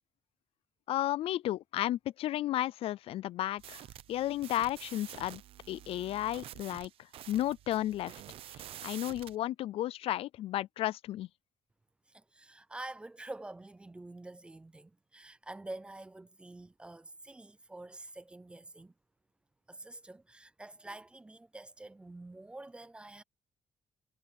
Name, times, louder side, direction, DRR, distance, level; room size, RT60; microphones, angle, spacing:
voice 1, 0.9-3.8 4.1-5.4 5.7-6.9 7.3-8.1 8.5-11.3, left 13 dB, 75° left, 0.4 m, -33 dB
sound 1, 3.6-9.4, right 12 dB, 70° right, 0.7 m, -48 dB
voice 2, 12.1-18.9 19.7-23.2, right 2 dB, 10° right, 0.4 m, -47 dB
cardioid pair, 165°, 10 cm